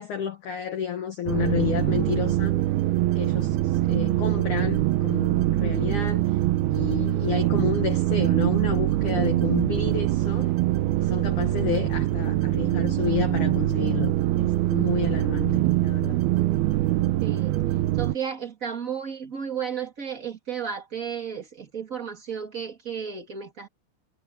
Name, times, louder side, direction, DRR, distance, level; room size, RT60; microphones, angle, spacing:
voice 1, 0.0-2.6 3.2-6.4 6.7-10.5 11.0-16.2, left 9 dB, 65° left, 2.0 m, -31 dB
sound 1, 1.3-18.2, right 15 dB, 80° right, 2.2 m, -23 dB
voice 2, 17.2-17.5 18.0-23.7, right 7 dB, 40° right, 1.1 m, -33 dB
omnidirectional pair, 5.7 m